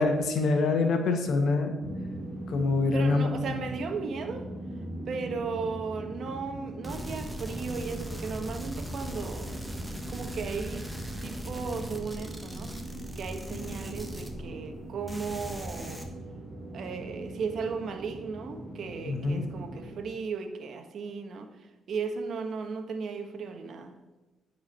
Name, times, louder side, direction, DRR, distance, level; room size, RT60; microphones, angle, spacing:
voice 1, 0.0-1.7 2.5-3.3 19.1-19.4, left 3 dB, 70° left, 5 dB, 1.6 m, -25 dB
sound 1, 1.8-20.0, right 1 dB, 10° left, 1.8 m, -41 dB
voice 2, 2.9-4.5 5.1-9.7 10.1-10.9 11.2-12.7 13.1-16.0 16.7-21.5 21.9-23.9, right 5 dB, 60° right, 7 dB, 1.3 m, -36 dB
sound 2, 6.8-14.8 15.1-16.0, equal, 5° right, 1.5 m, -39 dB
9.8 x 4.9 x 7.5 m, 1.1 s
cardioid pair, 90°, 0 cm